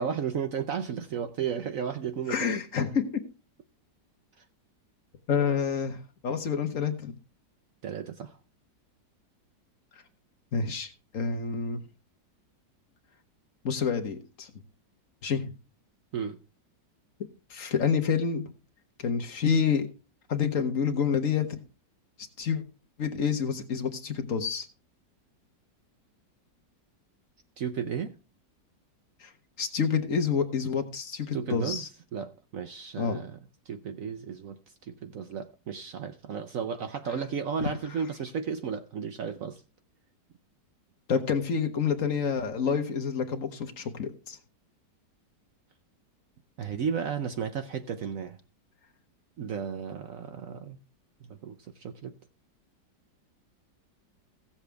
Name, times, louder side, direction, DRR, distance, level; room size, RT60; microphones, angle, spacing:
voice 1, 0.0-2.6 4.4-4.5 7.8-8.4 16.1-16.4 27.6-28.2 31.3-33.4 33.7-39.6 46.6-48.4 49.4-50.8 51.3-52.2, right 7 dB, 60° right, 1.0 m, -34 dB
voice 2, 2.3-3.1 5.3-7.1 10.5-11.8 13.6-14.5 15.2-15.5 17.5-18.5 19.0-19.9 20.3-21.6 22.4-22.6 23.0-24.7 29.2-29.3 29.6-31.9 33.0-33.2 37.6-37.7 41.1-44.4, left 6 dB, 50° left, 1.3 m, -28 dB
16.0 x 7.3 x 3.4 m
omnidirectional pair, 1.9 m